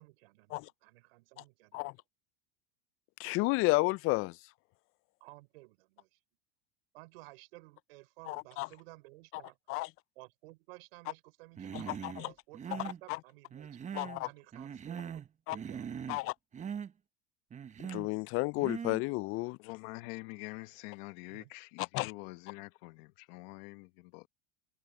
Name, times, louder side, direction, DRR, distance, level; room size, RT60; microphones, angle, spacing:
voice 1, 0.0-1.9 5.2-6.1 6.9-9.8 10.1-13.7 14.2-16.0 21.3-21.5, right 23 dB, 75° right, 6.3 m, -55 dB
voice 2, 3.2-4.3 8.3-8.7 9.7-9.9 12.0-12.1 13.1-13.2 13.9-14.3 15.5-15.6 16.1-16.3 17.9-19.6 21.9-22.1, left 23 dB, 45° left, 0.4 m, -31 dB
Human voice, 11.6-12.2 12.5-13.0 13.5-14.2 14.5-15.3 15.5-16.2 16.5-16.9 17.5-18.1 18.6-19.0, right 7 dB, 25° right, 0.9 m, -41 dB
voice 3, 19.6-24.3, left 25 dB, 65° left, 1.3 m, -46 dB
hypercardioid pair, 100°, 30 cm